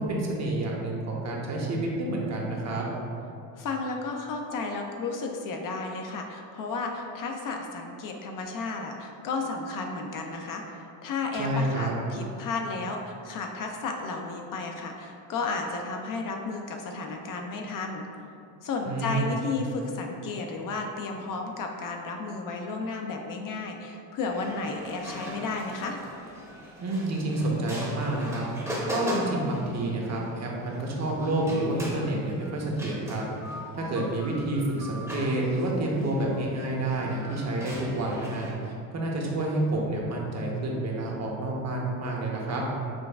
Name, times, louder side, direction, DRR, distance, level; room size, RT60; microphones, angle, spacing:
voice 1, 0.0-2.9 11.3-11.9 18.8-19.4 26.8-28.4 28.9-33.2 33.7-42.7, right 2 dB, 40° right, -1 dB, 0.7 m, -29 dB
voice 2, 3.5-18.1 18.6-26.0, left 3 dB, 50° left, 2 dB, 0.5 m, -33 dB
sound 1, 24.3-38.5, equal, 5° right, 0.7 m, -39 dB
6.1 x 2.3 x 2.3 m, 2.5 s
supercardioid pair, 85°, 44 cm